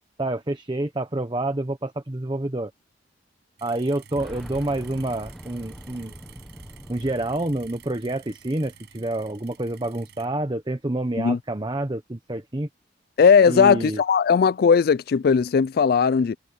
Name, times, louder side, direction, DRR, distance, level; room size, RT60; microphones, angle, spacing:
voice 1, 0.2-2.7 3.6-6.1 6.9-12.7 13.5-14.0, right 1 dB, 25° right, 1.0 m, -28 dB
sound 1, 3.6-10.3, right 8 dB, 65° right, 6.4 m, -51 dB
Boom, 4.2-8.9 9.2-9.3 10.4-10.5, equal, ahead, 0.7 m, -43 dB
voice 2, 13.2-16.4, left 6 dB, 55° left, 0.3 m, -18 dB
head